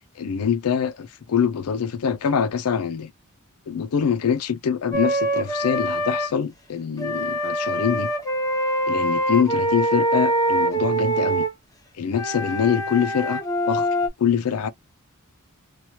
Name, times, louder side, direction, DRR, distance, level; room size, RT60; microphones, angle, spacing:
voice 1, 0.2-3.1 3.7-8.1 8.9-11.4 12.0-13.4 13.7-13.9 14.2-14.7, left 7 dB, 85° left, 0.4 m, -24 dB
Wind instrument woodwind instrument, 4.9-6.3 7.0-11.5 12.1-14.1, right 1 dB, 15° left, 0.8 m, -24 dB
3.0 x 2.3 x 2.8 m
head